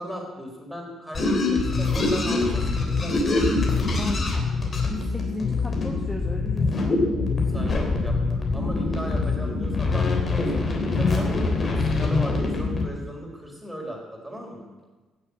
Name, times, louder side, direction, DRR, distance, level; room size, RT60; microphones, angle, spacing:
voice 1, 0.0-3.6 7.5-11.3 11.8-14.7, equal, 5° right, 1 dB, 4.0 m, -37 dB
sound 1, 1.1-12.8, left 3 dB, 35° left, 3.1 m, -24 dB
voice 2, 4.0-4.5 4.8-7.0, left 2 dB, 15° left, 1 dB, 1.4 m, -36 dB
16.0 x 7.7 x 8.5 m, 1.2 s
cardioid pair, 110°, 0 cm